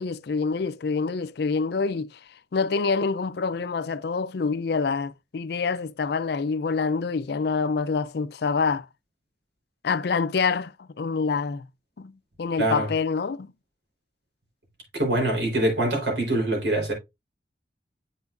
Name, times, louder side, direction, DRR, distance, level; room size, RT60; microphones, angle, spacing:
voice 1, 0.0-2.2 2.5-8.9 9.8-11.7 12.0-13.5, left 4 dB, 60° left, 0.4 m, -26 dB
voice 2, 12.6-12.9 14.9-16.9, right 1 dB, 75° right, 3.7 m, -24 dB
8.2 x 5.8 x 2.5 m
head